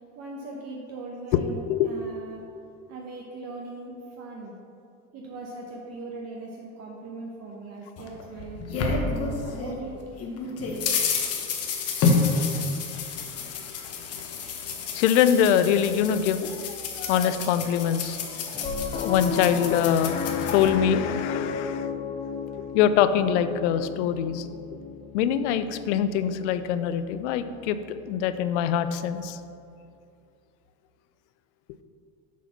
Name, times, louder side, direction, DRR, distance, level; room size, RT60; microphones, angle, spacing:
voice 1, 0.2-2.4 2.9-4.5 5.1-10.0, right 2 dB, 50° right, -2 dB, 1.0 m, -40 dB
voice 2, 1.3-1.9 10.7-21.9 22.7-24.5 25.1-29.4, left 9 dB, 90° left, 12 dB, 0.5 m, -25 dB
sound 1, 8.0-9.8 10.2-20.7, left 4 dB, 45° left, 1.1 m, -29 dB
Piano, 18.5-29.0, left 6 dB, 20° left, 0.5 m, -34 dB
7.3 x 4.1 x 5.8 m, 2.5 s
supercardioid pair, 115°, 34 cm